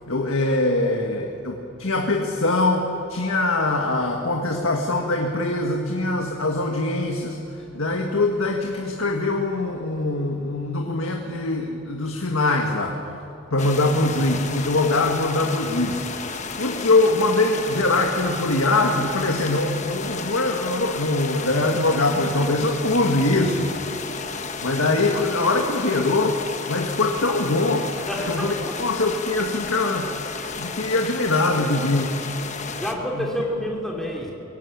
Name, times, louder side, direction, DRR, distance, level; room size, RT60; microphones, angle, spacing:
voice 1, 0.1-7.4 7.7-13.0 13.5-23.8 24.6-26.4 26.7-27.9 28.3-30.1 30.6-32.2 33.2-33.3, left 2 dB, 90° left, 2 dB, 1.8 m, -23 dB
sound 1, 13.6-32.9, left 4 dB, 35° left, 1.2 m, -33 dB
voice 2, 27.9-28.9 30.4-30.6 32.6-34.3, equal, ahead, -2 dB, 3.3 m, -30 dB
23.0 x 18.0 x 8.8 m, 2.8 s
head